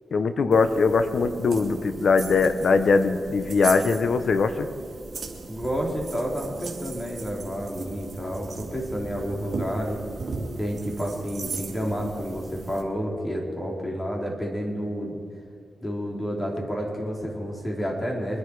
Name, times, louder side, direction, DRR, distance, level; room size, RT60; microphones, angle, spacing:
voice 1, 0.1-4.7, left 4 dB, 70° left, 10 dB, 1.0 m, -21 dB
sound 1, 0.5-12.8, right 4 dB, 60° right, 2.3 m, -38 dB
voice 2, 5.5-10.0 10.6-15.2 15.8-18.4, equal, 20° left, -1 dB, 4.3 m, -30 dB
24.0 x 10.5 x 4.9 m, 2.4 s
cardioid pair, 65°, 0 cm